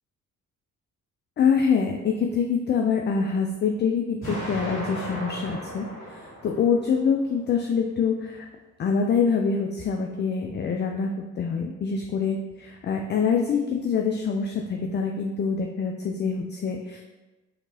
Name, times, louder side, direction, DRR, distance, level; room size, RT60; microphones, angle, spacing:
voice 1, 1.4-8.5 8.8-17.0, left 6 dB, 25° left, 2 dB, 0.4 m, -25 dB
Explosion, 4.2-7.2, equal, 85° left, 1.5 m, -36 dB
6.4 x 2.9 x 2.8 m, 1.1 s
figure-of-eight pair, 40°, 41 cm